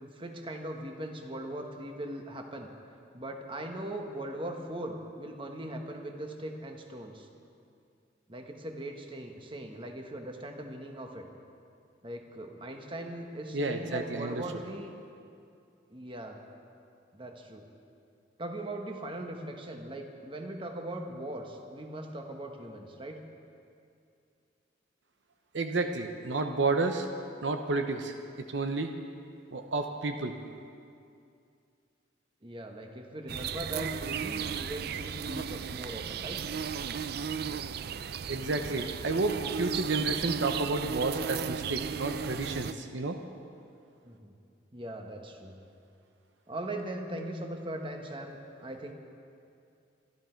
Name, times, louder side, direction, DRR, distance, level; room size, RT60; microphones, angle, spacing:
voice 1, 0.0-2.7 3.1-7.3 8.3-11.2 12.0-14.9 15.9-16.4 17.1-17.7 18.4-23.2 32.4-36.4 44.0-44.3 44.7-45.5 46.5-48.9, right 1 dB, 25° right, 3 dB, 1.3 m, -40 dB
voice 2, 13.5-14.4 25.5-27.1 27.4-28.1 28.5-28.9 29.5-30.3 38.3-43.2, right 3 dB, 70° right, 6 dB, 0.8 m, -31 dB
sound 1, 33.3-42.7, right 7 dB, 55° right, 0.4 m, -35 dB
25.0 x 12.0 x 4.5 m, 2.5 s
head